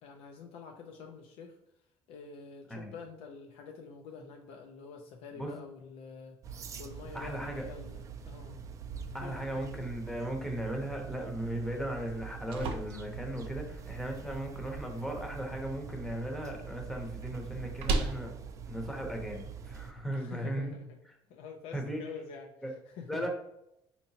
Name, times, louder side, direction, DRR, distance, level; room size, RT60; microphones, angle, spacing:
voice 1, 0.0-1.6 2.1-8.6 9.2-9.7 14.2-14.5 20.1-21.0 21.3-23.3, left 5 dB, 80° left, 3 dB, 0.4 m, -47 dB
sound 1, 6.4-19.9, right 6 dB, 35° right, 0.3 m, -44 dB
voice 2, 7.1-7.6 9.1-18.3 18.7-20.7 21.7-22.0 22.6-22.7 23.1-23.3, right 1 dB, 5° left, 1 dB, 0.7 m, -37 dB
sound 2, 12.1-20.0, right 3 dB, 75° right, 0.6 m, -40 dB
4.2 x 2.8 x 2.7 m, 0.81 s
cardioid pair, 145°, 10 cm